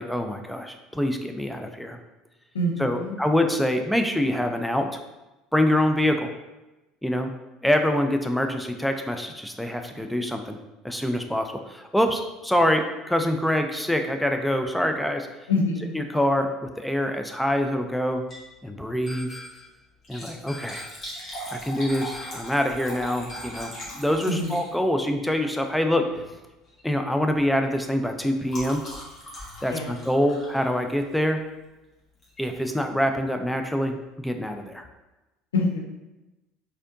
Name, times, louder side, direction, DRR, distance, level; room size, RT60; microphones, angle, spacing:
voice 1, 0.0-2.0 2.8-5.0 5.5-6.3 7.0-7.3 7.6-10.6 10.8-15.3 15.9-18.2 18.6-19.4 20.1-20.9 21.5-26.1 26.8-28.8 29.6-31.4 32.4-34.8, left 1 dB, ahead, 5 dB, 0.4 m, -25 dB
voice 2, 2.5-3.2 15.5-16.0 24.3-24.6 29.7-30.0 35.5-35.8, left 2 dB, 75° left, 1 dB, 0.5 m, -26 dB
Liquid, 18.1-18.5 18.9-19.0 19.9-25.0 26.0-26.3 26.6-26.9 27.2-31.3 32.2-32.5 33.0-33.1 33.3-33.4, equal, 35° left, 1.4 m, -40 dB
sound 1, 19.1-19.8 20.5-21.2 21.9-22.6 23.3-24.0, left 1 dB, 20° left, 0.8 m, -42 dB
4.1 x 2.7 x 2.5 m, 1.0 s
figure-of-eight pair, 65°, 0 cm